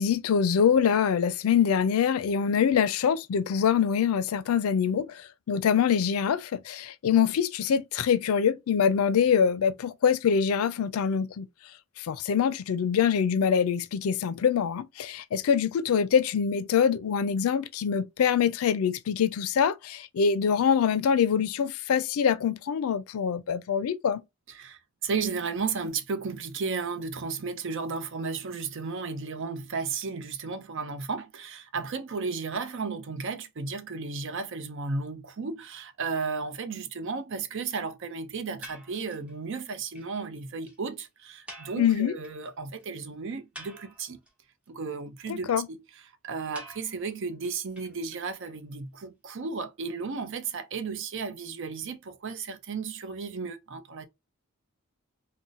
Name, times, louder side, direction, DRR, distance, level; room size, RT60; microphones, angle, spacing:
voice 1, 0.0-11.5 12.0-24.2 41.8-42.1 45.5-45.7, left 7 dB, 85° left, 0.4 m, -24 dB
voice 2, 24.5-44.2 44.7-54.1, right 4 dB, 60° right, 0.6 m, -34 dB
sound 1, 38.6-39.3 39.7-39.8 39.9-40.1 40.4-40.5 40.6-40.8 41.5-42.5 42.8-42.9 43.3-44.3 46.5-48.5, right 1 dB, 5° right, 0.9 m, -47 dB
3.9 x 2.1 x 2.4 m
head